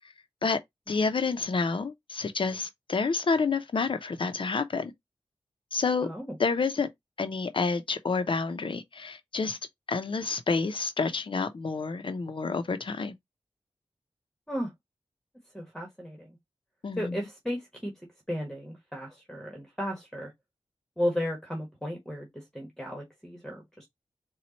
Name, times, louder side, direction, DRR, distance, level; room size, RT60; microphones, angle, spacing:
voice 1, 0.9-4.9 5.7-6.1 6.4-6.9 7.2-9.6 9.9-13.1 16.8-17.1, left 4 dB, 60° left, 0.7 m, -29 dB
voice 2, 6.0-6.4 14.5-14.7 15.5-16.4 17.0-17.9 18.3-20.3 21.0-23.9, equal, 5° left, 1.3 m, -34 dB
4.4 x 2.3 x 4.1 m
wide cardioid pair, 105°, 10 cm